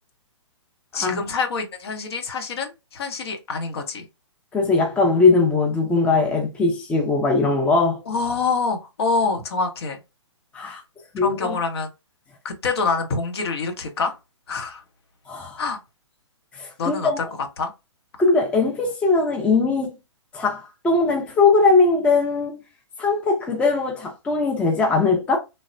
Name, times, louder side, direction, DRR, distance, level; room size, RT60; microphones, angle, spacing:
voice 1, 0.9-4.0 8.1-10.0 10.6-10.7 11.2-11.9 12.4-14.1 14.5-14.8 15.6-15.8 16.8-17.2 17.6-17.7, left 4 dB, 55° left, 0.7 m, -26 dB
voice 2, 4.5-8.0 10.5-10.8 11.1-11.6 15.3-15.6 16.5-17.2 18.2-19.9 20.3-22.6 23.0-25.4, left 3 dB, 10° left, 0.5 m, -20 dB
3.2 x 2.0 x 2.5 m
figure-of-eight pair, 125°, 16 cm